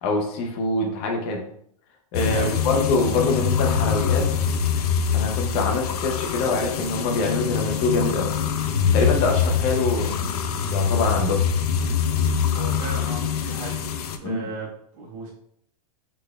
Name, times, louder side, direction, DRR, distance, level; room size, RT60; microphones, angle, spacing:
voice 1, 0.0-1.4 2.1-4.6 5.1-8.3 8.9-10.3 10.7-11.4 14.2-14.5, left 3 dB, 30° left, 1 dB, 0.6 m, -24 dB
sound 1, 2.1-14.2, left 7 dB, 80° left, 0.5 m, -24 dB
voice 2, 2.3-2.8 12.5-13.9 14.2-15.3, right 3 dB, 55° right, -3 dB, 1.4 m, -36 dB
4.0 x 3.2 x 2.3 m, 0.69 s
supercardioid pair, 160°, 19 cm